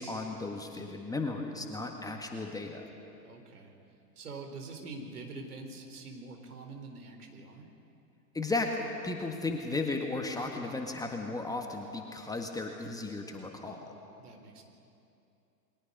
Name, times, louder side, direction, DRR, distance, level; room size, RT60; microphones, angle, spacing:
voice 1, 0.0-2.8 8.3-13.8, left 3 dB, 5° left, 2 dB, 1.6 m, -35 dB
voice 2, 3.2-3.7 4.2-7.7 14.2-14.6, right 3 dB, 65° right, 4 dB, 4.1 m, -45 dB
29.0 x 22.0 x 5.4 m, 2.7 s
figure-of-eight pair, 100°, 48 cm